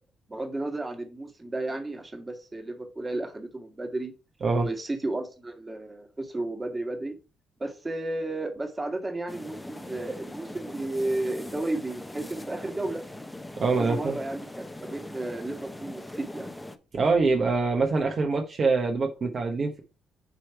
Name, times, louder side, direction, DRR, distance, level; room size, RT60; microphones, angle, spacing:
voice 1, 0.3-4.1 4.6-7.2 7.6-13.0 13.8-16.5, right 2 dB, 25° right, 1.7 m, -33 dB
sound 1, 9.3-16.8, left 1 dB, 10° left, 0.9 m, -41 dB
voice 2, 13.6-14.1 16.9-19.8, right 4 dB, 50° right, 1.1 m, -24 dB
8.3 x 3.2 x 4.6 m
supercardioid pair, 60°, 0 cm